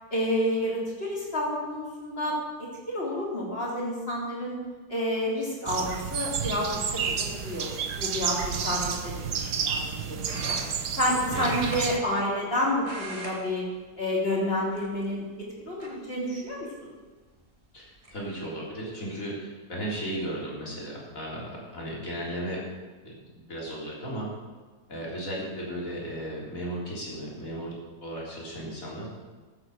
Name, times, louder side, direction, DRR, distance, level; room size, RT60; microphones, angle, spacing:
voice 1, 0.1-2.3 2.9-4.6 4.9-10.6 11.0-13.7 14.0-16.9, left 1 dB, 35° left, -5 dB, 3.6 m, -29 dB
sound 1, 5.7-12.0, right 7 dB, 85° right, 1.5 m, -31 dB
sound 2, 10.2-11.0 11.3-12.5 12.8-13.4 13.7-13.9 14.7-15.2 15.8-15.9 17.3-17.4 17.8-18.1, right 1 dB, 20° right, 2.2 m, -40 dB
voice 2, 17.7-22.6 23.0-23.2 23.5-24.3 24.9-27.8 28.0-29.1, right 1 dB, 55° left, -5 dB, 3.9 m, -35 dB
14.0 x 8.0 x 6.5 m, 1.4 s
omnidirectional pair, 1.7 m